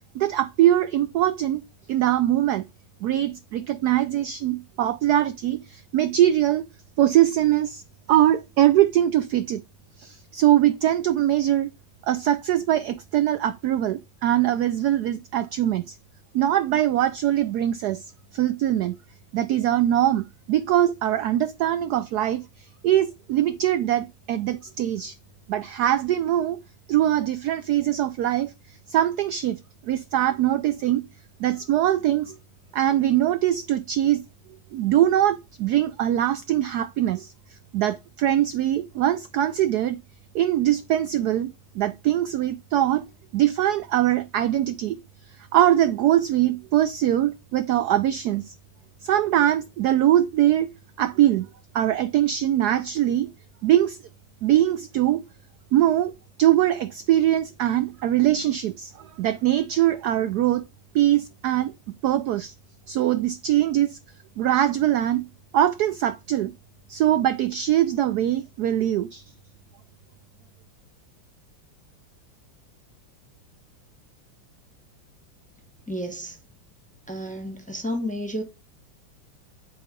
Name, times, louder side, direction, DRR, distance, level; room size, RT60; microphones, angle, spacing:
voice 1, 0.1-1.6 1.9-2.6 3.0-6.6 7.0-7.8 8.1-9.6 10.0-11.7 12.0-16.0 16.3-18.0 18.3-19.0 19.3-25.2 25.5-26.6 26.9-31.0 31.4-32.3 32.7-34.2 34.7-40.0 40.3-43.0 43.3-45.0 45.3-48.5 49.0-50.7 51.0-51.5 51.7-53.3 53.6-54.0 54.4-55.2 55.7-56.1 56.4-60.6 60.9-61.7 62.0-62.5 62.9-64.0 64.4-65.3 65.5-66.5 66.9-69.2, right 12 dB, 75° right, 0.9 m, -22 dB
voice 2, 75.9-76.4 77.1-78.4, equal, 5° left, 1.0 m, -31 dB
9.0 x 3.9 x 5.2 m
omnidirectional pair, 2.1 m